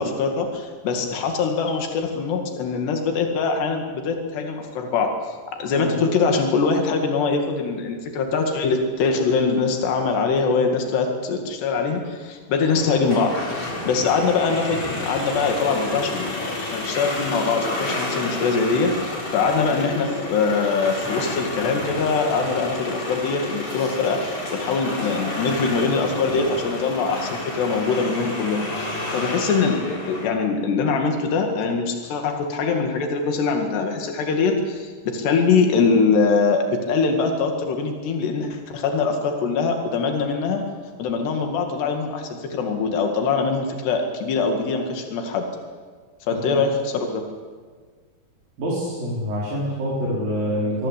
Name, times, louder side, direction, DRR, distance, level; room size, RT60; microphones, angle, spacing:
voice 1, 0.0-40.6 41.0-45.5 46.3-47.2, left 4 dB, 85° left, 3 dB, 4.3 m, -23 dB
sound 1, 12.7-30.3, left 2 dB, 40° left, 7.3 m, -30 dB
voice 2, 48.6-50.9, equal, 60° right, -6 dB, 6.3 m, -26 dB
25.0 x 22.5 x 8.5 m, 1.5 s
omnidirectional pair, 4.7 m